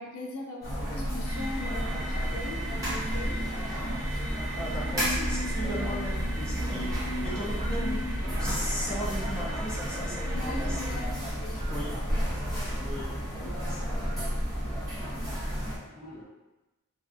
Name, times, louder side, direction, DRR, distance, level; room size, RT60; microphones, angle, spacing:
voice 1, 0.0-3.4 10.2-11.8 12.3-12.7, left 2 dB, 80° left, 0 dB, 0.4 m, -40 dB
sound 1, 0.6-15.8, equal, 15° right, 0.8 m, -31 dB
sound 2, 0.8-16.2, equal, 35° right, 1.1 m, -45 dB
sound 3, 1.2-11.0, right 1 dB, 75° right, 0.7 m, -41 dB
voice 2, 4.6-8.0 8.4-11.0 11.7-12.0 12.8-13.2 13.6-13.8, equal, 5° left, -8 dB, 0.5 m, -37 dB
2.5 x 2.3 x 2.4 m, 1.1 s
head